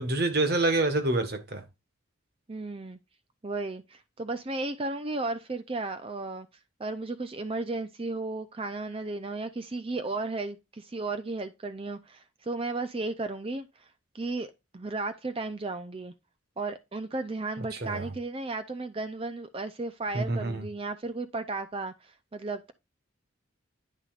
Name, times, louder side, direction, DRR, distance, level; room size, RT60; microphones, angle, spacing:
voice 1, 0.0-1.6 17.6-18.1 20.1-20.6, right 2 dB, 50° right, 1.4 m, -27 dB
voice 2, 2.5-3.0 3.4-6.5 6.8-13.9 14.1-14.5 14.7-16.1 16.6-22.7, right 3 dB, 30° right, 0.5 m, -34 dB
9.3 x 6.0 x 2.4 m
head